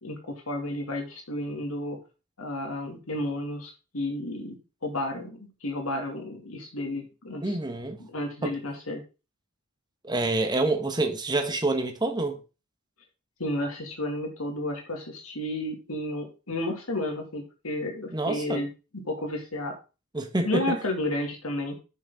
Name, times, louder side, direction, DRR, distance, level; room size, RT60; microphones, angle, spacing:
voice 1, 0.0-2.0 2.4-7.6 8.0-9.0 13.4-18.7 18.9-19.8 20.4-21.8, left 1 dB, 85° left, 2.5 m, -32 dB
voice 2, 7.4-8.0 8.4-8.5 10.0-12.4 18.1-18.6 20.1-20.8, right 2 dB, 20° right, 1.4 m, -27 dB
8.4 x 6.7 x 3.7 m
head